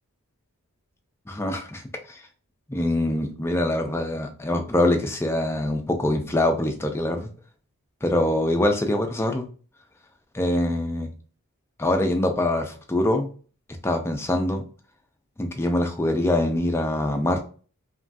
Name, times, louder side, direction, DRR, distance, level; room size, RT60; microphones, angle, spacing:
voice 1, 1.3-2.2 2.7-7.3 8.0-9.4 10.3-11.1 11.8-13.3 13.8-14.6 15.4-17.4, left 1 dB, 10° left, 4 dB, 0.3 m, -24 dB
3.0 x 2.3 x 2.5 m, 0.39 s
head